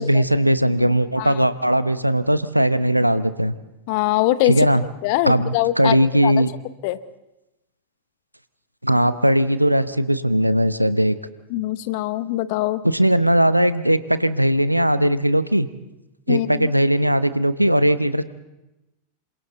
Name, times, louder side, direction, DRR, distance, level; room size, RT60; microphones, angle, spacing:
voice 1, 0.0-3.6 4.5-4.8 5.2-6.5 8.8-11.2 12.8-15.7 16.3-18.2, right 1 dB, 90° right, 14 dB, 0.8 m, -19 dB
voice 2, 3.9-4.7 5.0-6.0 6.2-6.3 6.8-7.0 11.5-12.8 16.3-16.7, left 16 dB, 45° left, 14 dB, 1.0 m, -22 dB
27.5 x 26.0 x 4.0 m, 0.96 s
figure-of-eight pair, 90°, 0 cm